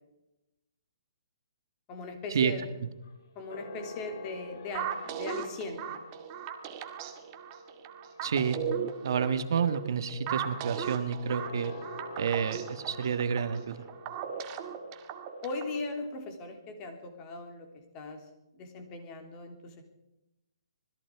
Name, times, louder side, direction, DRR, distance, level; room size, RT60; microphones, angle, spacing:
voice 1, 1.9-2.7 3.4-6.0 15.4-18.2 18.5-19.8, left 3 dB, 20° left, 4 dB, 3.3 m, -39 dB
sound 1, 2.5-16.3, left 2 dB, 45° left, 3.4 m, -48 dB
sound 2, 4.7-15.8, right 9 dB, 20° right, 2.0 m, -38 dB
voice 2, 8.2-8.6 9.0-11.7 12.2-13.8, right 7 dB, 55° right, 10 dB, 1.6 m, -29 dB
26.5 x 20.5 x 4.8 m, 0.92 s
hypercardioid pair, 170°, 3 cm